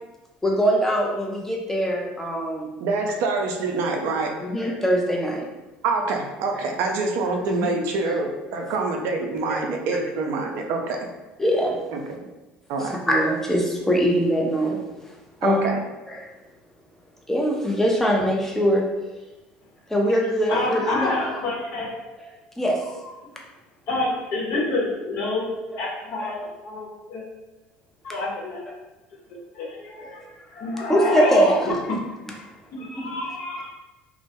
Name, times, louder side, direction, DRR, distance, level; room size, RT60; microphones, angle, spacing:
voice 1, 0.4-2.7 4.4-5.4 7.3-7.7 8.0-8.2 8.6-8.7 11.4-11.7 13.1-14.8 15.4-15.7 16.1-16.2 17.3-18.8 19.9-21.1 22.6-22.7 25.7-25.8 30.9-31.7, equal, 5° left, -1 dB, 0.6 m, -22 dB
voice 2, 2.8-4.3 5.8-11.0 11.9-12.0 12.7-12.9 15.4-15.8, right 3 dB, 65° right, 2 dB, 0.4 m, -25 dB
voice 3, 20.5-21.9 22.8-22.9 23.9-25.5 25.8-27.2 28.0-28.6 29.5-31.7 32.7-33.7, left 2 dB, 60° left, -4 dB, 0.8 m, -28 dB
2.1 x 2.1 x 2.8 m, 1.1 s
hypercardioid pair, 70°, 5 cm